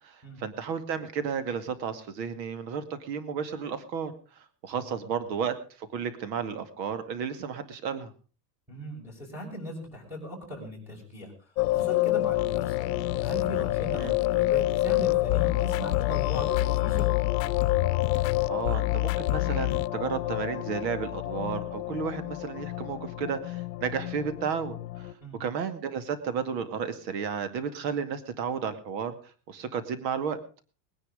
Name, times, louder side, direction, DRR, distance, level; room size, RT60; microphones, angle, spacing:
voice 1, 0.0-8.1 13.8-14.1 18.1-25.1 25.4-30.4, right 6 dB, 85° right, 10 dB, 2.3 m, -33 dB
voice 2, 8.7-11.3 11.7-12.8 13.2-17.2 25.2-25.4, equal, 5° right, 0 dB, 6.0 m, -39 dB
sound 1, 11.6-25.1, left 17 dB, 60° left, 1.0 m, -29 dB
sound 2, 12.4-19.9, left 19 dB, 85° left, 0.7 m, -30 dB
21.0 x 10.0 x 5.1 m, 0.37 s
supercardioid pair, 180°, 49 cm